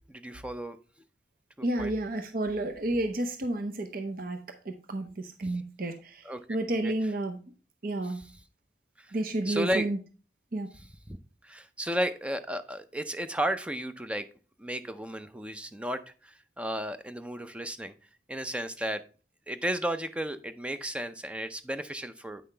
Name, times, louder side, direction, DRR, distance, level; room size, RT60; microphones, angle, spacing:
voice 1, 0.1-0.8 1.8-1.9 6.3-6.5 6.8-6.9 9.0-9.1 9.5-9.8 11.1-11.2 11.4-14.3 14.6-17.9 18.3-19.0 19.5-22.4, equal, 5° right, 10 dB, 0.4 m, -33 dB
voice 2, 1.6-7.4 7.8-8.2 9.1-10.0 10.5-10.7, right 1 dB, 50° right, 7 dB, 0.7 m, -31 dB
8.5 x 5.7 x 3.3 m, 0.36 s
head